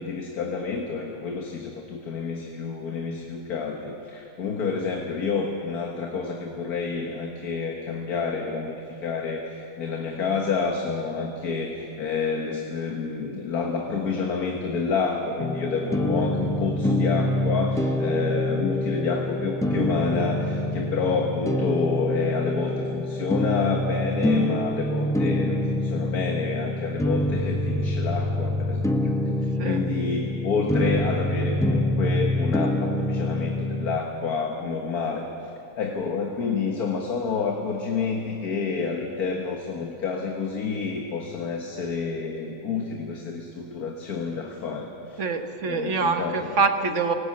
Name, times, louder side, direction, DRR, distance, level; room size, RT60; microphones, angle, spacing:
voice 1, 0.0-28.9 29.3-35.3 35.8-45.2 45.7-46.5, left 5 dB, 85° left, 1 dB, 1.9 m, -29 dB
sound 1, 15.4-34.0, left 1 dB, 5° left, 0.5 m, -26 dB
voice 2, 45.2-47.1, right 4 dB, 55° right, 6 dB, 1.4 m, -25 dB
18.5 x 18.0 x 8.6 m, 2.8 s
omnidirectional pair, 1.6 m